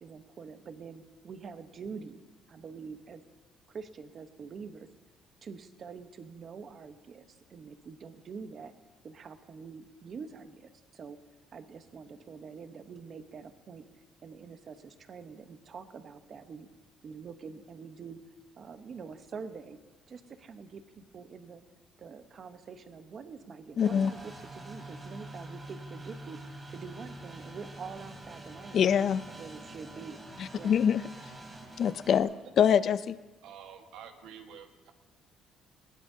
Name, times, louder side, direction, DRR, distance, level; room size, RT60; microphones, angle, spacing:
voice 1, 0.0-2.2 2.5-3.2 3.7-4.9 5.4-8.7 9.0-11.2 11.5-13.8 14.2-16.7 17.0-18.2 18.6-19.8 20.1-21.6 22.0-26.4 26.7-28.9 29.3-30.2 30.6-30.8, right 5 dB, 40° right, 9 dB, 1.0 m, -45 dB
voice 2, 23.8-24.1 28.7-29.2 30.4-31.3 31.8-32.3 32.6-33.2, left 8 dB, 50° left, 15 dB, 0.4 m, -25 dB
sound 1, 23.8-32.2, right 1 dB, 20° right, 3.2 m, -46 dB
voice 3, 33.4-34.9, right 8 dB, 80° right, 5 dB, 1.4 m, -48 dB
20.5 x 16.5 x 2.8 m, 1.2 s
cardioid pair, 130°, 0 cm